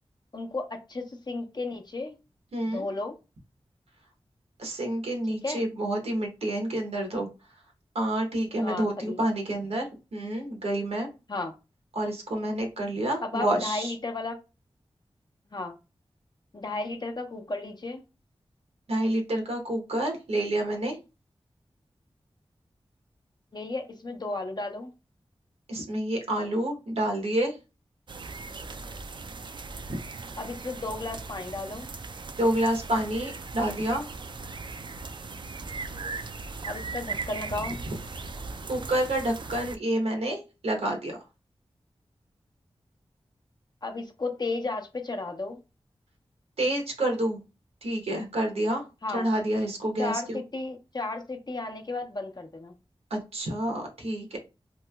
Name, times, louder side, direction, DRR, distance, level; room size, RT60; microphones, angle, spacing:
voice 1, 0.3-2.2 2.7-3.1 5.4-5.6 8.6-9.2 11.3-11.5 13.2-14.4 15.5-15.7 16.5-18.0 23.5-24.9 30.4-31.9 36.6-37.8 43.8-45.6 49.0-49.3 50.0-52.7, left 2 dB, 45° left, 0.7 m, -34 dB
voice 2, 2.5-2.8 4.6-7.3 7.9-11.1 11.9-13.9 18.9-21.0 25.7-27.6 29.9-30.0 32.4-34.1 38.7-41.2 46.6-47.4 47.8-50.4 53.1-54.4, right 1 dB, 90° right, 0.9 m, -28 dB
sound 1, 28.1-39.8, right 4 dB, 50° right, 0.3 m, -38 dB
3.0 x 2.8 x 2.3 m
cardioid pair, 50°, 10 cm